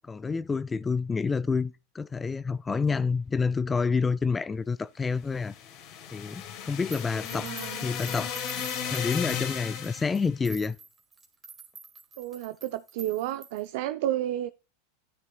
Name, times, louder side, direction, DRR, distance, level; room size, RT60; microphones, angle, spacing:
voice 1, 0.0-5.5 6.1-7.5 7.8-8.3 8.8-10.8, left 5 dB, 15° left, 0.4 m, -28 dB
sound 1, 5.3-10.3, left 8 dB, 55° left, 2.0 m, -35 dB
sound 2, 6.9-13.8, right 5 dB, 25° right, 1.8 m, -47 dB
voice 2, 7.4-7.9 12.2-14.5, right 13 dB, 65° right, 0.4 m, -31 dB
13.5 x 9.6 x 2.2 m
hypercardioid pair, 100°, 0 cm